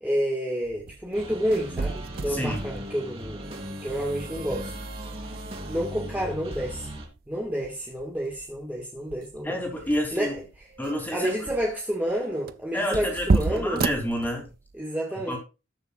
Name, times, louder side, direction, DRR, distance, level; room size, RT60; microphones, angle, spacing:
voice 1, 0.0-4.7 5.7-6.9 7.3-9.6 10.1-10.4 11.1-13.9 14.8-15.4, equal, 10° right, 1.9 m, -29 dB
sound 1, 0.6-14.8, right 3 dB, 50° right, 0.5 m, -33 dB
sound 2, 1.1-7.1, equal, 30° right, 4.0 m, -38 dB
voice 2, 2.3-2.6 9.4-10.4 10.8-11.5 12.7-14.5 15.3-15.4, equal, 10° left, 3.4 m, -29 dB
19.5 x 6.8 x 2.5 m
head